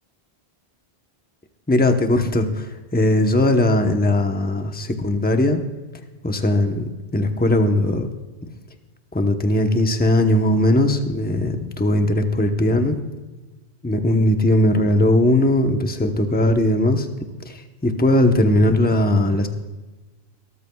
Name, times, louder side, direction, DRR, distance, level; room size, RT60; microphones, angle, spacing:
voice 1, 1.7-5.6 6.2-8.1 9.1-13.0 13.8-17.1 17.5-19.5, left 1 dB, 10° left, 5 dB, 0.9 m, -19 dB
24.0 x 14.0 x 2.3 m, 1.1 s
omnidirectional pair, 1.1 m